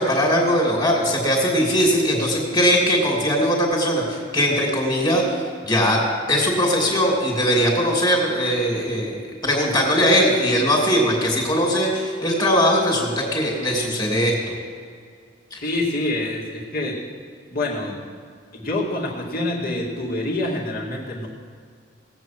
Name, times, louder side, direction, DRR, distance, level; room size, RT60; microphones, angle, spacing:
voice 1, 0.0-5.2 5.7-6.0 6.3-9.2 9.4-14.5 15.5-15.6, equal, 20° left, -1 dB, 2.8 m, -20 dB
voice 2, 15.6-16.9 17.5-18.0 18.5-21.3, left 1 dB, 50° left, -2 dB, 2.3 m, -26 dB
18.5 x 8.0 x 6.0 m, 2.1 s
head